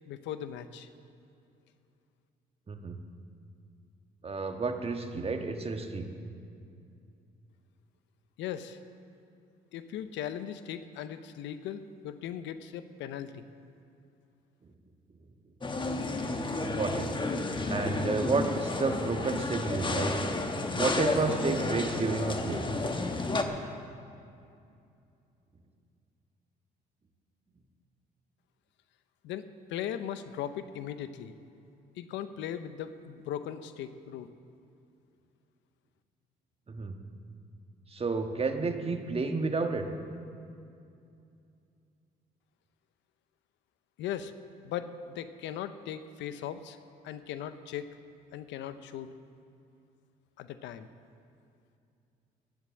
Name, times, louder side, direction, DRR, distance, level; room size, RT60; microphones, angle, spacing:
voice 1, 0.1-0.9 8.4-8.8 9.7-13.4 29.2-31.3 32.0-34.3 44.0-44.3 44.6-46.8 47.0-47.9 48.3-49.1 50.4-50.9, left 10 dB, 75° left, 12 dB, 0.7 m, -38 dB
voice 2, 2.7-3.0 4.2-6.1 16.6-17.1 17.7-20.2 20.7-22.6 36.7-36.9 37.9-39.8, right 4 dB, 30° right, 5 dB, 1.4 m, -31 dB
sound 1, 15.6-23.4, left 3 dB, 25° left, 1.3 m, -31 dB
11.5 x 10.5 x 7.4 m, 2.5 s
supercardioid pair, 65°, 19 cm